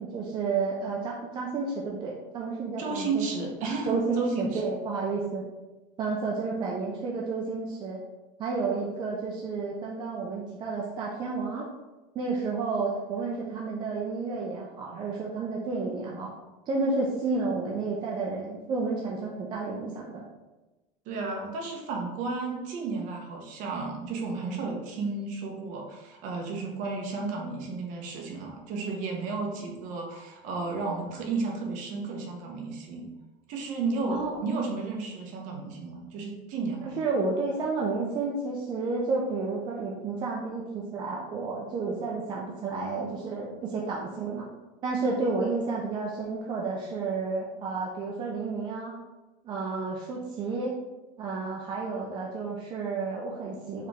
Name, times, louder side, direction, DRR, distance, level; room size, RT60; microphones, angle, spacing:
voice 1, 0.0-3.5 3.9-5.4 6.0-8.0 8.4-11.7 12.1-16.3 16.7-20.2 34.1-34.3 36.8-44.5 44.8-48.9 49.4-50.8 51.2-53.9, right 4 dB, 25° right, -2 dB, 0.5 m, -31 dB
voice 2, 2.8-4.6 21.1-33.1 33.5-37.0, right 4 dB, 45° right, 1 dB, 0.9 m, -33 dB
4.7 x 3.0 x 3.5 m, 1.1 s
cardioid pair, 170°, 18 cm